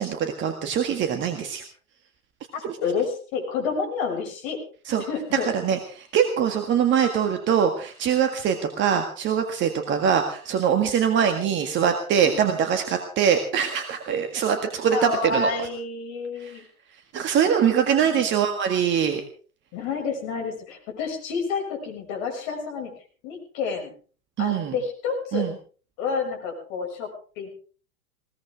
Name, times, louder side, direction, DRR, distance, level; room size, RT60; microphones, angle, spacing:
voice 1, 0.0-1.6 2.6-2.8 4.8-5.0 5.3-15.5 16.4-16.6 17.1-19.2 24.4-24.7 25.3-25.5, right 8 dB, 25° right, 6 dB, 1.8 m, -23 dB
voice 2, 2.5-4.6 5.0-5.5 12.2-12.4 14.9-16.6 17.6-18.3 19.7-22.9 23.2-23.9 24.4-25.5 26.0-27.1 27.4-27.5, left 5 dB, 40° left, 3 dB, 6.4 m, -29 dB
20.5 x 18.0 x 3.5 m, 0.41 s
figure-of-eight pair, 100°, 42 cm